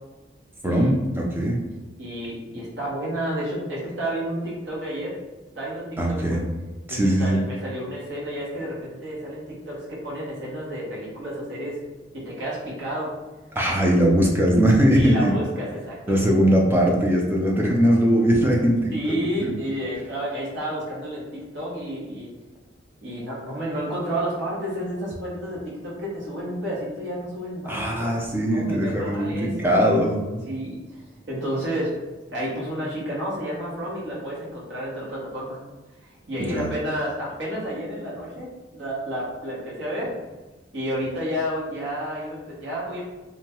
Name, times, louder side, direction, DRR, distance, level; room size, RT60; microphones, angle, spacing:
voice 1, 0.6-1.6 6.0-6.4 6.9-7.4 13.6-15.3 16.1-19.5 27.7-30.2 36.4-36.7, equal, 10° right, -1 dB, 0.4 m, -20 dB
voice 2, 2.0-5.2 5.5-6.4 6.9-11.8 12.1-13.1 14.9-16.3 18.9-22.3 23.0-27.8 28.5-29.7 30.5-31.0 31.3-31.9 32.3-35.6 36.3-40.1 40.7-43.0, equal, 70° right, -6 dB, 1.1 m, -31 dB
2.8 x 2.2 x 2.9 m, 1.2 s
head